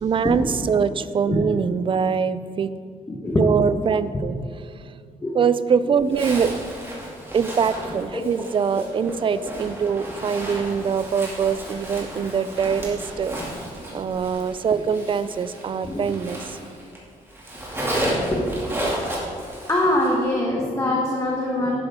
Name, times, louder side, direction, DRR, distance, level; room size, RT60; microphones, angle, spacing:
voice 1, 0.0-2.7 3.4-4.3 4.6-5.0 5.3-6.5 7.3-13.6 13.9-16.6, right 6 dB, 35° right, 14 dB, 0.4 m, -23 dB
voice 2, 3.1-3.4 5.2-5.3 8.1-8.2 9.1-9.2 15.9-16.1 18.3-18.4 19.7-21.8, left 1 dB, 20° left, -2 dB, 1.3 m, -23 dB
Zipper (clothing), 6.1-17.0 17.3-20.2, right 1 dB, 15° right, 2.3 m, -32 dB
11.5 x 9.8 x 3.6 m, 2.2 s
wide cardioid pair, 130°, 15 cm